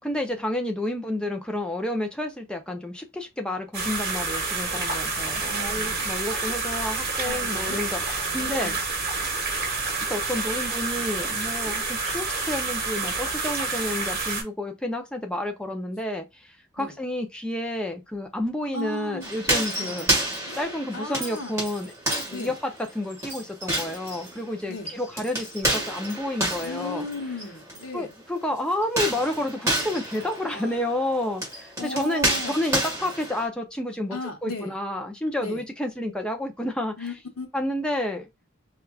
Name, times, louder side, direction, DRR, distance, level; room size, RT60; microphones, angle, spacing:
voice 1, 0.0-8.0 8.3-8.8 10.1-20.1 20.5-21.9 22.3-27.1 27.9-36.9 37.5-38.3, left 1 dB, 5° left, 0.5 m, -30 dB
sound 1, 3.7-14.4, right 3 dB, 50° right, 1.4 m, -28 dB
voice 2, 5.4-6.1 7.2-7.8 8.3-8.8 16.8-17.0 18.7-19.4 19.8-20.0 20.4-21.6 22.3-22.5 24.7-24.9 26.6-28.1 30.5-30.9 31.8-32.6 34.1-34.7 35.4-35.7 37.0-37.5, left 2 dB, 90° left, 1.0 m, -36 dB
sound 2, 19.2-27.8 28.8-33.5, right 1 dB, 15° right, 1.6 m, -30 dB
4.4 x 2.4 x 2.3 m
head